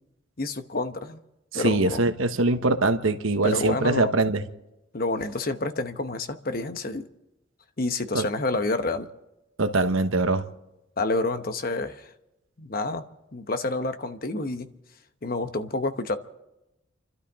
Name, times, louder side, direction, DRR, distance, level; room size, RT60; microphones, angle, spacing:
voice 1, 0.4-1.2 1.5-2.0 3.4-4.1 4.9-7.0 7.8-9.1 11.0-12.1 12.6-13.0 13.3-14.7 15.2-16.1, left 2 dB, 45° left, 1.0 m, -28 dB
voice 2, 1.5-4.4 8.1-8.2 9.6-10.5, right 2 dB, 75° right, 1.1 m, -23 dB
30.0 x 12.5 x 3.6 m
head